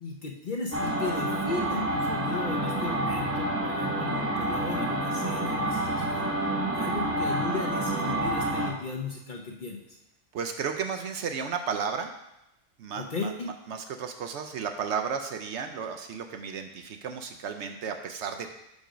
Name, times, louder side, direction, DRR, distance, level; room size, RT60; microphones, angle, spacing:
voice 1, 0.0-6.3 6.7-10.0 12.9-13.5, left 4 dB, 50° left, 1 dB, 0.7 m, -35 dB
sound 1, 0.7-8.7, right 1 dB, 15° right, 0.6 m, -28 dB
voice 2, 10.3-12.1 12.8-18.5, right 6 dB, 65° right, 6 dB, 0.8 m, -33 dB
5.3 x 5.0 x 5.0 m, 0.88 s
omnidirectional pair, 1.4 m